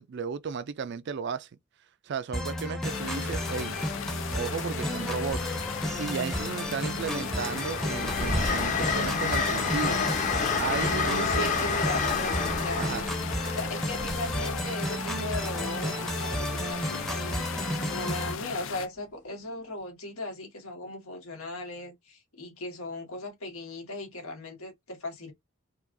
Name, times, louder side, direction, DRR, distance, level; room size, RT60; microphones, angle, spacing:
voice 1, 0.0-1.5 2.0-3.7 4.3-10.0 10.6-11.3 12.8-13.0, right 6 dB, 55° right, 0.4 m, -34 dB
sound 1, 2.3-18.3, equal, ahead, 0.7 m, -33 dB
sound 2, 2.8-18.9, left 7 dB, 60° left, 0.5 m, -37 dB
Train, 5.7-5.9 6.3-15.1 16.7-16.9, left 4 dB, 35° left, 0.9 m, -30 dB
voice 2, 11.1-13.2 13.5-25.3, left 1 dB, 90° left, 1.6 m, -37 dB
4.5 x 2.4 x 2.6 m
head